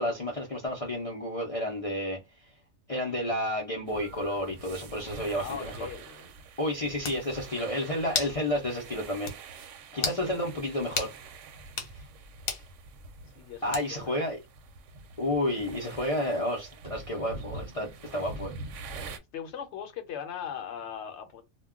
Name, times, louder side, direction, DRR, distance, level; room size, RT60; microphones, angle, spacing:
voice 1, 0.0-2.2 2.9-5.7 6.6-9.6 9.9-11.1 11.9-12.0 13.6-14.4 15.2-18.5, left 1 dB, 45° left, 0.4 m, -31 dB
sound 1, 3.9-19.2, right 3 dB, 70° right, 0.8 m, -45 dB
voice 2, 5.3-6.3 6.8-7.0 9.9-10.5 13.3-14.3 19.3-21.4, left 8 dB, 65° left, 0.9 m, -40 dB
sound 2, 6.6-6.7 7.0-7.2 8.1-8.4 8.8-8.9 9.3-9.4 10.0-10.2 11.0-11.1 11.7-11.9 12.5-12.7 13.7-14.1, left 5 dB, 80° left, 1.1 m, -32 dB
2.3 x 2.2 x 3.5 m
omnidirectional pair, 1.4 m